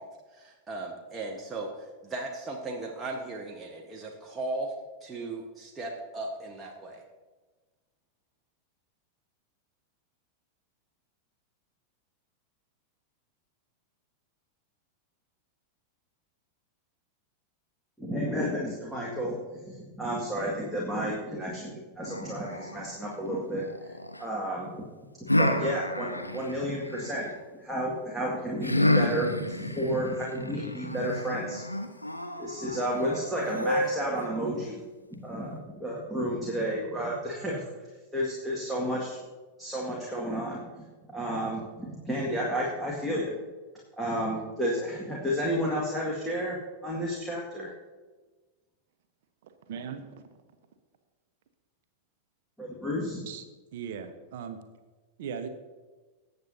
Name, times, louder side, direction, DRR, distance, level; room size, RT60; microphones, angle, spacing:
voice 1, 0.0-4.7 5.0-7.0, right 2 dB, 15° right, -1 dB, 1.3 m, -37 dB
voice 2, 18.0-19.3 19.6-23.9 24.2-24.8 25.2-31.6 32.4-34.8 35.1-37.6 38.1-39.2 39.6-43.4 44.0-46.6 46.8-47.7 52.6-53.2, equal, ahead, -5 dB, 2.0 m, -31 dB
sound 1, 22.0-24.2 25.3-27.3 28.6-34.2, left 1 dB, 85° left, 0.8 m, -30 dB
voice 3, 49.4-50.2 53.3-53.4 53.7-54.6 55.2-55.5, right 7 dB, 55° right, 8 dB, 1.0 m, -38 dB
18.5 x 8.0 x 2.8 m, 1.3 s
figure-of-eight pair, 90°, 0 cm